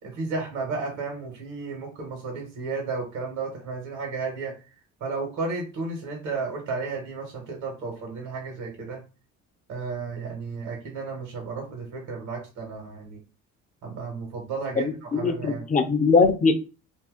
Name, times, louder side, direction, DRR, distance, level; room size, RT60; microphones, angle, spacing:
voice 1, 0.0-4.5 5.0-9.0 9.7-13.2 13.8-15.6, right 4 dB, 65° right, 1 dB, 1.2 m, -33 dB
voice 2, 15.1-16.5, left 4 dB, 25° left, 7 dB, 0.6 m, -20 dB
2.7 x 2.6 x 3.6 m, 0.33 s
cardioid pair, 105°, 32 cm